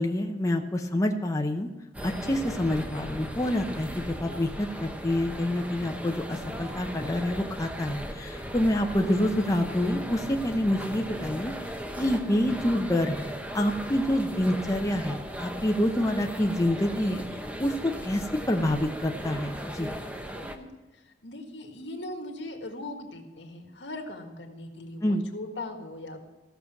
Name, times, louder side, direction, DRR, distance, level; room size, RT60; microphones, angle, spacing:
voice 1, 0.0-1.7 2.0-11.5 12.0-17.2 17.6-19.9 25.0-25.2, left 1 dB, 20° left, 3 dB, 0.7 m, -27 dB
sound 1, 1.9-20.6, equal, 10° right, 0.9 m, -37 dB
voice 2, 20.4-20.7 21.2-26.2, left 2 dB, 80° left, 4 dB, 1.7 m, -39 dB
14.5 x 6.8 x 6.0 m, 1.2 s
head